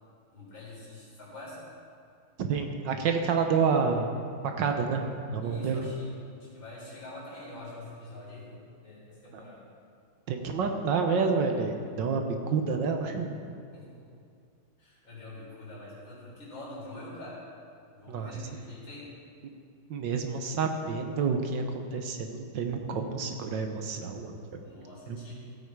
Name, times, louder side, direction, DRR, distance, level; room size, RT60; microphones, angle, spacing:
voice 1, 0.3-1.6 5.4-6.1 6.4-9.6 13.7-14.2 14.8-17.4 17.9-19.1 24.6-25.3, left 1 dB, 70° left, -6 dB, 4.7 m, -45 dB
voice 2, 2.4-4.1 4.4-5.0 5.3-5.9 9.3-9.4 10.3-13.4 18.1-18.3 19.9-24.6 25.1-25.2, right 5 dB, 70° right, 5 dB, 1.5 m, -29 dB
16.0 x 8.2 x 4.8 m, 2.3 s
omnidirectional pair, 2.2 m